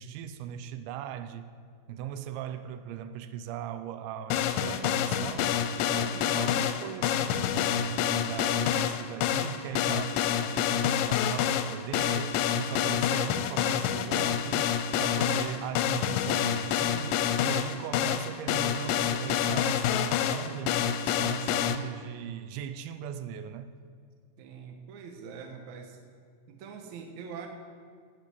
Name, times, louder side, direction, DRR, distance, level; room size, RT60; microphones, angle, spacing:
voice 1, 0.0-1.5 1.9-5.6 5.9-23.7, right 9 dB, 85° right, 2.9 m, -39 dB
sound 1, 4.3-21.8, left 9 dB, 90° left, 2.9 m, -27 dB
voice 2, 24.4-26.0 26.5-27.5, right 6 dB, 65° right, 2.0 m, -43 dB
18.0 x 6.8 x 8.2 m
omnidirectional pair, 5.2 m